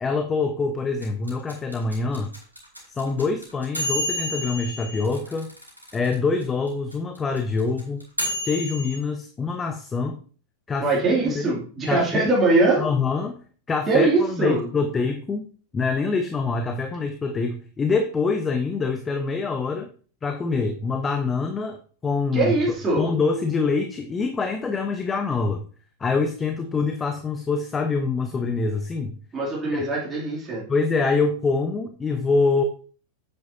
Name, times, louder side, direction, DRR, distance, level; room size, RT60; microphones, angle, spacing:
voice 1, 0.0-2.3 2.9-5.5 5.9-8.0 8.4-10.2 10.7-11.6 11.8-12.3 12.8-13.4 13.7-15.4 15.7-19.9 20.2-22.5 23.0-25.6 26.0-29.1 29.6-29.9 30.7-32.6, left 4 dB, 20° left, 6 dB, 0.8 m, -25 dB
sound 1, 1.0-6.1 6.4-6.5 6.7-9.0, equal, 90° right, 2.5 m, -30 dB
voice 2, 10.8-12.9 13.9-14.7 22.3-23.1 29.3-30.7, right 2 dB, 20° right, -4 dB, 2.7 m, -22 dB
8.5 x 8.1 x 2.7 m, 0.40 s
figure-of-eight pair, 90°, 0 cm